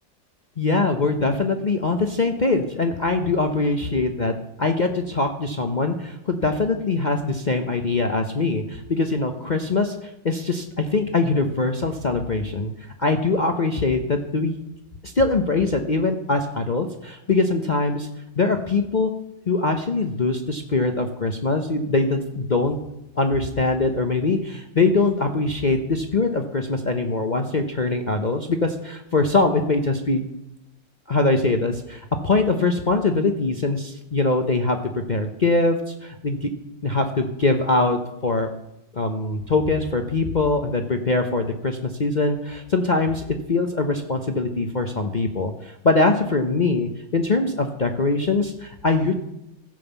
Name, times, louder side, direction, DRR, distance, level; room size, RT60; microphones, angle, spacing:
voice 1, 0.6-14.6 15.0-18.1 18.4-19.1 19.5-22.8 23.2-30.2 31.1-34.8 35.1-36.5 36.8-38.5 38.9-43.2 43.5-49.1, left 3 dB, 65° left, 5 dB, 0.4 m, -22 dB
15.5 x 5.5 x 7.0 m, 0.86 s
omnidirectional pair, 2.0 m